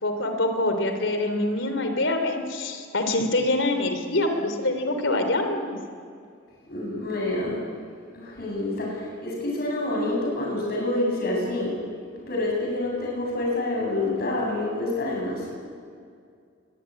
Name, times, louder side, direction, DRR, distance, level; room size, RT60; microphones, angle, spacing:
voice 1, 0.0-5.8, left 2 dB, 75° left, 6 dB, 3.5 m, -25 dB
voice 2, 6.7-7.6 8.1-11.7 12.2-15.5, left 2 dB, 50° left, -2 dB, 8.0 m, -27 dB
23.5 x 20.0 x 9.9 m, 2.2 s
head